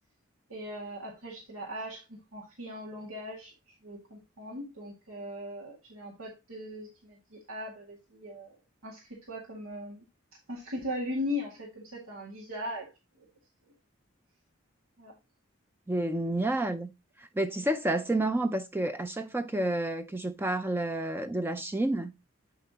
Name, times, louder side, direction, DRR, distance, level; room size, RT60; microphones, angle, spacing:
voice 1, 0.5-3.5 3.8-8.5 8.8-9.0 9.3-10.0 10.5-12.9 13.2-13.3 15.0-15.1, left 1 dB, 90° right, 2.0 m, -39 dB
voice 2, 15.9-16.9 17.2-22.1, right 1 dB, 10° right, 0.4 m, -30 dB
8.3 x 5.7 x 2.8 m
head